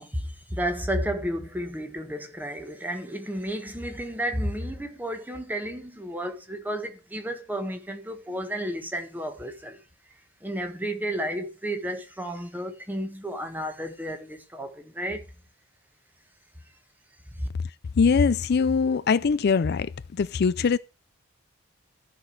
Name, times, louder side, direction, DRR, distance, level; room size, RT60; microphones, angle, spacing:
voice 1, 0.0-9.8 10.4-15.3 17.4-17.5, equal, 10° right, 1.4 m, -32 dB
voice 2, 18.0-19.9 20.2-20.8, left 5 dB, 50° left, 0.4 m, -22 dB
14.0 x 6.2 x 4.6 m
head